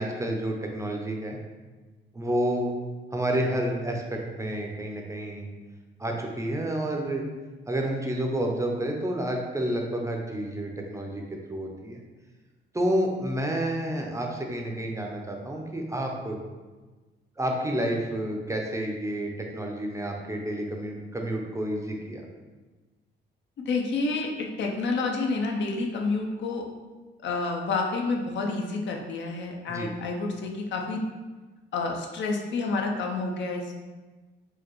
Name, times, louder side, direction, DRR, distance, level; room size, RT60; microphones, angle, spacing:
voice 1, 0.0-1.4 2.1-2.7 3.1-5.5 6.0-7.2 7.7-12.0 12.7-16.4 17.4-22.3 29.7-29.9, right 1 dB, 15° right, 1 dB, 0.5 m, -30 dB
voice 2, 23.6-26.6 27.2-31.0 31.7-33.7, left 3 dB, 65° left, 1 dB, 0.6 m, -29 dB
4.6 x 2.2 x 3.0 m, 1.3 s
cardioid pair, 90°, 20 cm